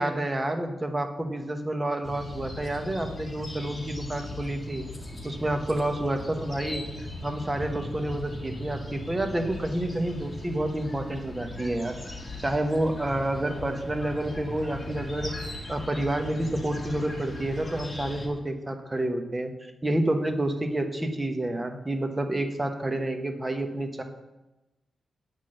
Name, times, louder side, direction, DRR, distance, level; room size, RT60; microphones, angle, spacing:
voice 1, 0.0-4.8 5.2-12.0 12.4-15.3 15.7-24.0, right 1 dB, 20° right, 5 dB, 1.0 m, -29 dB
sound 1, 2.0-18.3, left 1 dB, 15° left, 1.9 m, -39 dB
9.1 x 6.1 x 6.5 m, 1.0 s
wide cardioid pair, 120°, 0 cm